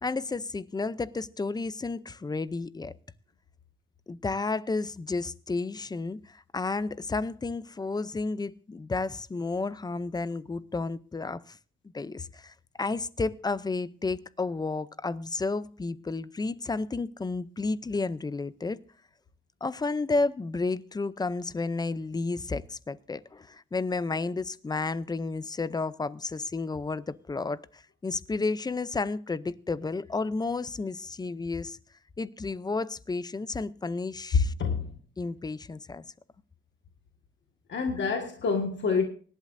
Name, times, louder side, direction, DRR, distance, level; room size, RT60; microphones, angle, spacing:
voice 1, 0.0-2.9 4.1-11.6 11.9-18.8 19.6-31.8 32.2-34.5 35.2-36.0, left 3 dB, 20° left, 0.6 m, -32 dB
voice 2, 34.3-34.9 37.7-39.1, left 5 dB, 65° left, 1.7 m, -26 dB
24.5 x 11.5 x 2.6 m
wide cardioid pair, 145°, 20 cm